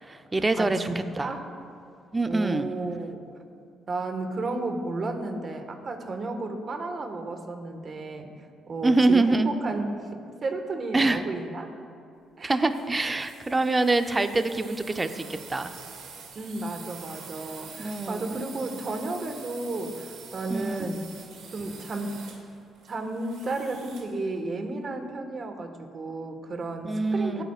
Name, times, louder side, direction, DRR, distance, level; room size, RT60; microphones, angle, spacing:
voice 1, 0.0-0.9 1.2-1.3 2.1-2.7 8.8-9.5 10.9-11.2 12.4-15.7 17.8-18.5 20.5-21.0 26.8-27.4, right 2 dB, 20° right, 9 dB, 0.6 m, -25 dB
voice 2, 0.6-1.4 2.3-3.2 3.9-8.3 8.7-11.7 12.4-12.7 13.0-13.1 16.3-21.0 21.5-22.1 22.9-27.4, right 2 dB, 45° right, 5 dB, 1.5 m, -33 dB
sound 1, 12.6-24.2, right 5 dB, 80° right, 1.6 m, -46 dB
23.5 x 8.9 x 2.4 m, 2.4 s
cardioid pair, 90°, 0 cm